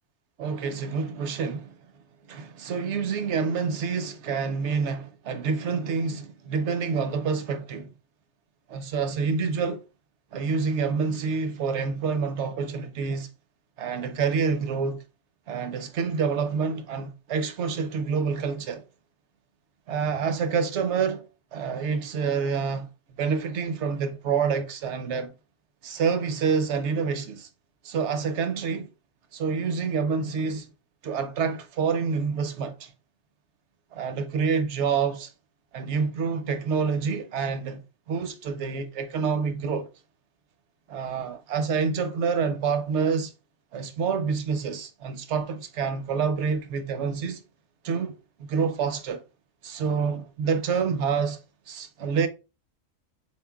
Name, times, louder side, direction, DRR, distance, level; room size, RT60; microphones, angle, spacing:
voice 1, 0.4-1.8 2.3-7.9 8.7-9.8 10.3-13.3 13.8-15.0 15.5-18.8 19.9-21.2 21.5-22.9 23.2-25.3 25.8-27.5 27.8-28.9 29.3-30.7 31.0-32.9 33.9-35.3 35.7-37.8 38.1-39.9 40.9-43.3 43.7-47.4 47.8-49.2 49.6-51.4 51.7-52.3, right 5 dB, 65° right, 0.8 m, -27 dB
4.1 x 3.7 x 2.3 m
omnidirectional pair, 1.4 m